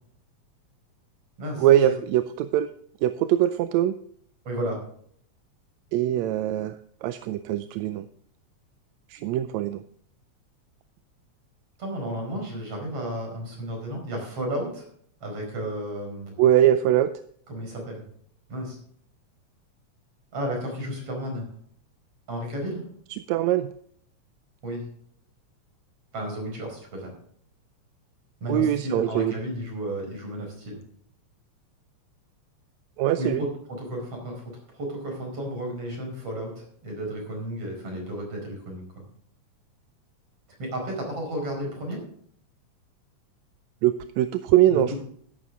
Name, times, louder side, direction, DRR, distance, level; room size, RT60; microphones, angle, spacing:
voice 1, 1.6-2.7 3.0-3.9 5.9-6.7 7.0-8.1 9.1-9.8 16.4-17.1 23.3-23.7 28.5-29.3 33.0-33.4 43.8-45.0, right 12 dB, 80° right, 11 dB, 1.8 m, -22 dB
voice 2, 4.5-4.8 11.8-14.9 15.2-16.4 17.5-18.0 18.5-18.8 20.3-21.5 22.3-22.8 24.6-24.8 26.1-27.1 28.4-30.8 33.2-34.4 34.7-38.9 40.6-42.0 44.7-45.0, equal, 50° right, 1 dB, 5.8 m, -32 dB
14.0 x 11.0 x 3.6 m, 0.63 s
omnidirectional pair, 3.4 m